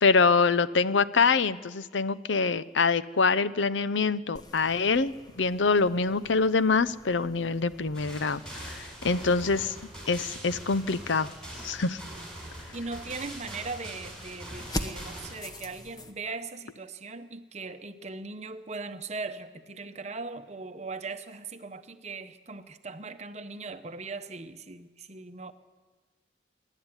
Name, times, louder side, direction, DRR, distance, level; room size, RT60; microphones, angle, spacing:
voice 1, 0.0-9.7 10.1-11.3 11.6-12.0, left 4 dB, 75° left, 15 dB, 0.7 m, -25 dB
sound 1, 4.4-16.1, left 1 dB, 20° left, 1.1 m, -44 dB
sound 2, 7.9-15.3, right 1 dB, 5° left, 6.2 m, -43 dB
voice 2, 12.7-25.5, right 3 dB, 35° right, 9 dB, 1.0 m, -39 dB
24.5 x 11.5 x 9.8 m, 1.4 s
head